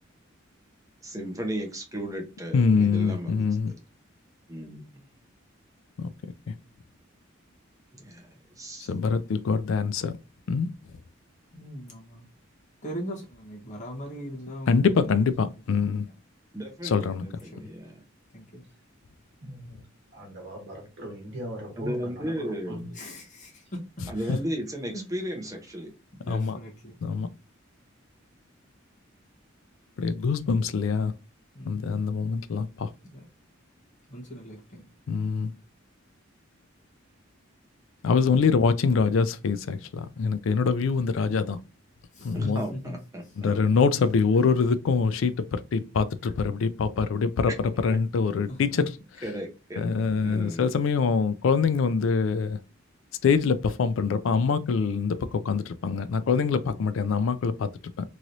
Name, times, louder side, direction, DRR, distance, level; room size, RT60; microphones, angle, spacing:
voice 1, 1.0-3.7 4.5-5.0 8.0-8.2 8.6-8.9 16.5-18.0 21.8-23.0 24.1-25.9 42.3-43.8 46.2-46.3 47.9-48.0 49.2-49.9 50.2-50.9, equal, 15° right, 0.8 m, -35 dB
voice 2, 2.5-3.7 8.9-10.1 10.5-10.7 14.7-16.1 16.9-17.2 26.3-26.6 27.0-27.3 30.0-31.1 31.7-32.7 35.1-35.5 38.0-39.8 40.2-41.6 42.2-42.6 43.4-45.3 45.7-47.5 47.8-48.8 49.8-52.6 53.2-55.2 55.5-57.7, left 5 dB, 70° left, 0.4 m, -24 dB
voice 3, 11.5-12.2 12.8-15.5 17.5-17.6 18.3-18.6 22.9-23.8 24.2-24.3 24.9-25.0 26.2-27.0 31.5-32.0 33.1-33.3 34.1-34.9 42.1-43.0 48.5-48.9, equal, 40° left, 1.1 m, -40 dB
voice 4, 19.4-19.8 20.1-23.1, equal, 60° right, 1.2 m, -40 dB
3.1 x 2.9 x 2.6 m
head